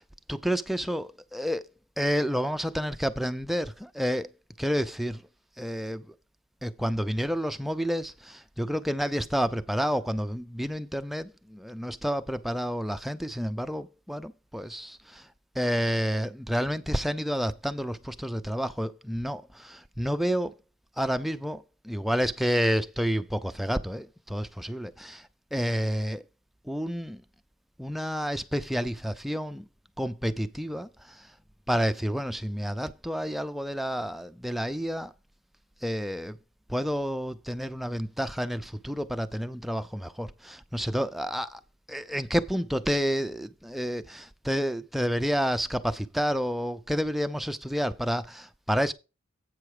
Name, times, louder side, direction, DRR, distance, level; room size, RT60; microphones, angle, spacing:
voice 1, 0.3-1.6 2.0-4.3 4.6-5.2 5.6-6.1 6.6-15.3 15.6-20.5 21.0-26.2 26.7-27.2 27.8-29.6 30.0-31.3 31.7-35.1 35.8-36.4 36.7-41.6 41.9-48.9, equal, ahead, 0.4 m, -29 dB
8.5 x 5.8 x 4.8 m
head